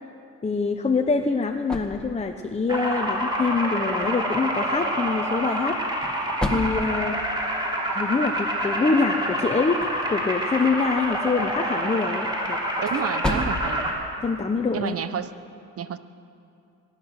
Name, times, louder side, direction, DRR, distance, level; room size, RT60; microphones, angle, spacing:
voice 1, 0.4-5.8 6.5-7.2 7.9-9.8 10.1-12.6 14.2-15.0, left 4 dB, 20° left, 4 dB, 0.8 m, -25 dB
sound 1, 0.9-15.3, left 1 dB, 5° left, 1.7 m, -37 dB
sound 2, 2.7-13.9, equal, 15° right, 3.2 m, -27 dB
voice 2, 12.8-13.9 14.7-15.3 15.8-16.0, right 8 dB, 50° right, 12 dB, 0.9 m, -30 dB
22.5 x 9.9 x 6.5 m, 2.6 s
cardioid pair, 90°, 30 cm